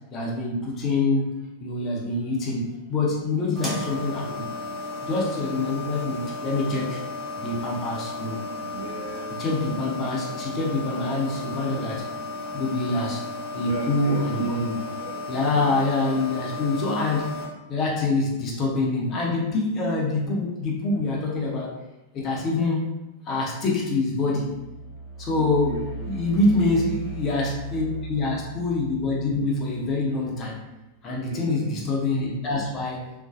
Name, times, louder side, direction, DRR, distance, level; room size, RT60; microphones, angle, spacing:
voice 1, 0.1-1.3 1.6-4.5 5.0-7.0 7.4-8.4 9.4-12.0 12.5-13.2 13.5-14.8 15.3-21.7 22.1-22.9 23.3-24.6 25.2-30.5 31.0-33.1, left 2 dB, 30° left, -3 dB, 0.6 m, -25 dB
sound 1, 3.6-17.5, left 2 dB, 5° right, 0.9 m, -34 dB
voice 2, 8.7-9.4 13.6-15.9 25.3-26.9 31.2-31.8, right 6 dB, 50° right, 1 dB, 0.4 m, -37 dB
sound 2, 24.3-30.5, right 2 dB, 70° left, 1.1 m, -38 dB
2.5 x 2.2 x 2.4 m, 0.98 s
figure-of-eight pair, 90°, 0 cm